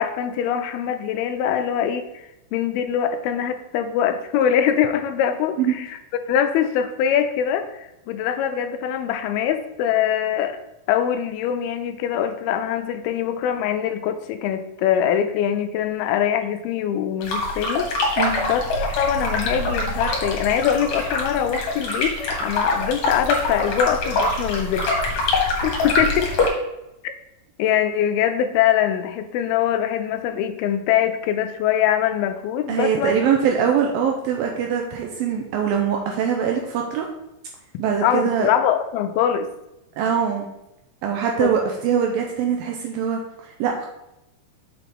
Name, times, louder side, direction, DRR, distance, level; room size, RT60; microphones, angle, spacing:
voice 1, 0.0-2.1 2.5-5.9 6.3-10.6 10.9-18.1 18.5-24.9 25.2-26.3 27.0-27.1 27.6-33.2 38.0-39.5 41.4-41.5, left 9 dB, 85° left, 8 dB, 2.4 m, -23 dB
sound 1, 17.2-26.5, left 2 dB, 60° left, 2.2 m, -24 dB
voice 2, 18.2-18.5 32.7-37.1 37.8-38.5 40.0-40.5 41.0-43.9, right 7 dB, 80° right, 1 dB, 2.2 m, -23 dB
6.6 x 5.7 x 3.5 m, 0.90 s
omnidirectional pair, 4.5 m